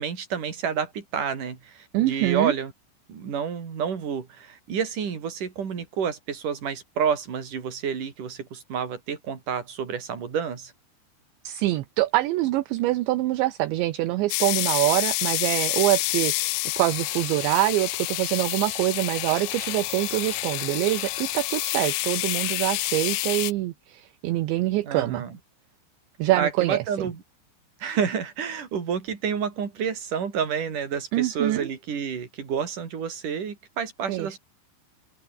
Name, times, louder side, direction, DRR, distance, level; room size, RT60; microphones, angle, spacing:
voice 1, 0.0-2.7 3.1-10.7 24.8-25.4 26.4-27.2 27.8-34.4, right 7 dB, 45° right, 4.9 m, -29 dB
voice 2, 1.9-2.5 11.4-25.2 26.2-26.8 31.1-31.7 34.1-34.4, right 17 dB, 75° right, 3.1 m, -25 dB
sound 1, 14.3-23.5, left 19 dB, 80° left, 2.9 m, -28 dB
omnidirectional pair, 5.7 m